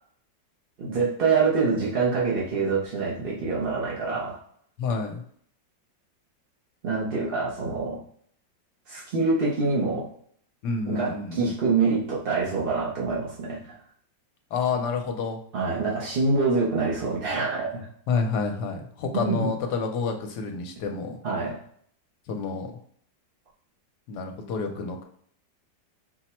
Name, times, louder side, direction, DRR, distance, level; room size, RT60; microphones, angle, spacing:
voice 1, 0.8-4.4 6.8-8.0 8.9-10.1 10.9-13.8 15.5-17.9 19.1-19.5 21.2-21.6, right 4 dB, 55° right, -5 dB, 0.6 m, -25 dB
voice 2, 4.8-5.2 10.6-11.5 14.5-15.4 18.1-21.2 22.3-22.7 24.1-25.0, left 4 dB, 70° left, 4 dB, 1.2 m, -29 dB
4.4 x 2.1 x 4.2 m, 0.63 s
omnidirectional pair, 1.9 m